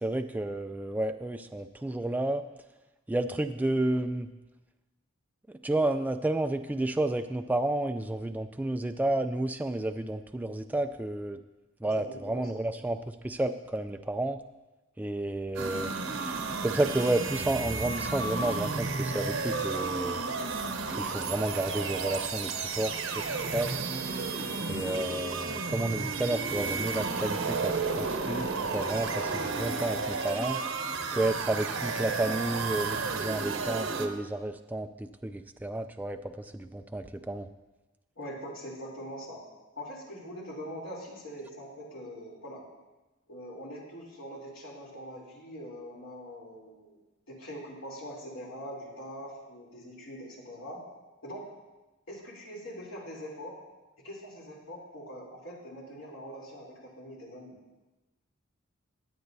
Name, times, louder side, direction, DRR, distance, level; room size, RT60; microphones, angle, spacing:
voice 1, 0.0-2.4 3.1-4.3 5.6-11.4 11.8-14.4 15.0-20.2 20.9-23.8 24.7-30.6 31.1-37.5, right 1 dB, 10° right, 7 dB, 0.3 m, -31 dB
voice 2, 12.0-12.6 38.2-39.4 39.8-42.6 43.3-47.0 47.3-50.8 51.2-51.5 52.1-53.6 54.0-57.6, equal, 80° left, -3 dB, 3.2 m, -43 dB
sound 1, 15.6-34.1, right 4 dB, 90° right, 1.0 m, -32 dB
21.0 x 8.0 x 2.7 m, 1.1 s
head